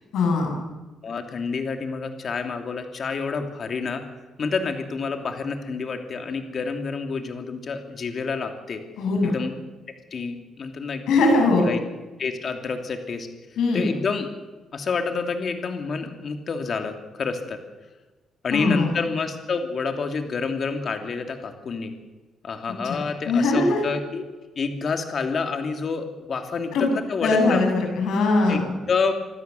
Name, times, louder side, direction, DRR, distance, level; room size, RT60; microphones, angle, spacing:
voice 1, 0.1-0.5 9.0-9.3 11.1-11.7 13.6-13.8 18.5-18.9 22.8-23.0 23.3-23.8 26.7-26.9 27.2-28.7, left 3 dB, 80° left, 2 dB, 7.5 m, -20 dB
voice 2, 1.0-4.0 4.4-8.8 9.2-9.5 10.1-11.8 12.2-13.3 13.7-14.3 14.7-17.6 18.4-21.9 22.4-24.2 24.6-27.6 28.5-29.2, left 4 dB, 50° left, 5 dB, 3.0 m, -28 dB
26.0 x 13.0 x 7.9 m, 1.2 s
cardioid pair, 90°, 0 cm